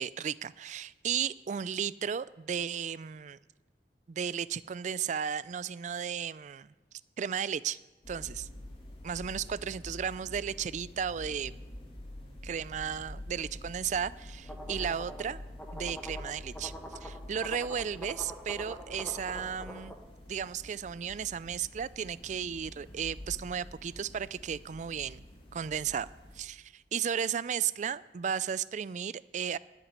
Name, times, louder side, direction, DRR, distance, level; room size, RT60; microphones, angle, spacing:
voice 1, 0.0-3.4 4.1-6.7 7.2-7.8 8.1-8.5 9.0-11.5 12.4-15.4 15.7-16.7 17.0-19.9 20.3-25.2 25.5-26.1 26.4-29.6, right 8 dB, 45° right, 19 dB, 0.3 m, -34 dB
sound 1, 8.0-26.4, left 1 dB, 30° left, 2.3 m, -47 dB
sound 2, 14.5-19.9, equal, 10° left, 1.3 m, -45 dB
10.0 x 8.2 x 9.9 m, 1.2 s
head